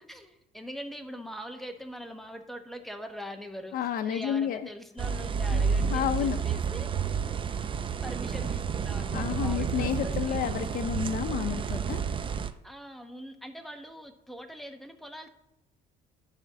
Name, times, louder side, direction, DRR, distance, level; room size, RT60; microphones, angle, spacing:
voice 1, 0.0-6.9 8.0-10.4 12.6-15.3, equal, ahead, 5 dB, 1.0 m, -42 dB
voice 2, 3.7-4.6 5.5-5.6 5.9-6.4 9.1-12.0, left 9 dB, 60° left, 8 dB, 0.7 m, -30 dB
sound 1, 5.0-12.5, right 6 dB, 30° right, 0.5 m, -30 dB
10.5 x 4.4 x 6.1 m, 0.88 s
cardioid pair, 110°, 17 cm